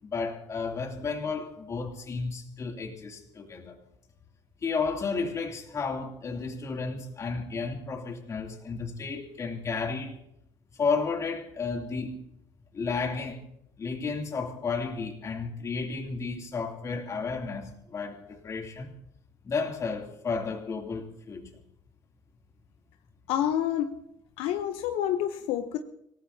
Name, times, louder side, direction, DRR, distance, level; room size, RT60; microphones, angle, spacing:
voice 1, 0.0-3.8 4.6-10.1 10.8-12.2 12.7-13.4 13.8-18.9 19.4-21.5, left 4 dB, 35° left, 2 dB, 2.9 m, -32 dB
voice 2, 23.3-24.0 24.4-25.8, left 11 dB, 75° left, 7 dB, 0.9 m, -28 dB
26.0 x 18.0 x 2.8 m, 0.77 s
cardioid pair, 120°, 10 cm